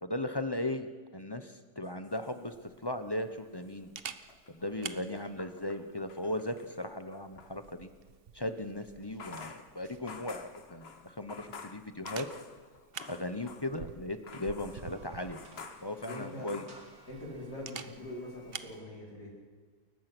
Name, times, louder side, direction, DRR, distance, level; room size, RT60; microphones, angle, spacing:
voice 1, 0.0-3.9 4.5-7.9 8.3-12.3 13.1-15.4 15.8-16.7, left 1 dB, 20° left, 9 dB, 0.7 m, -37 dB
sound 1, 1.8-3.1 3.4-7.6 9.0-13.9 14.2-17.2, left 5 dB, 45° left, 1.2 m, -50 dB
Camera, 2.1-18.8, right 7 dB, 45° right, 0.8 m, -50 dB
sound 2, 14.5-18.9, right 2 dB, 65° right, 3.1 m, -58 dB
voice 2, 16.0-16.5 17.1-19.3, left 1 dB, 85° left, -2 dB, 5.4 m, -43 dB
28.5 x 14.5 x 6.1 m, 1.4 s
omnidirectional pair, 1.7 m